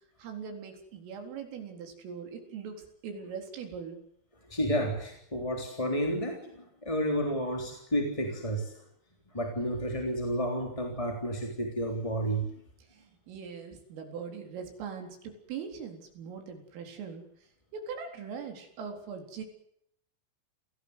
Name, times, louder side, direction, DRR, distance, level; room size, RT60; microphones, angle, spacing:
voice 1, 0.2-4.0 12.1-12.2 12.9-19.4, right 6 dB, 90° right, 4 dB, 6.6 m, -41 dB
voice 2, 4.5-8.7 9.3-12.5, equal, 10° left, 2 dB, 2.5 m, -31 dB
28.0 x 18.0 x 8.2 m, 0.72 s
omnidirectional pair, 5.7 m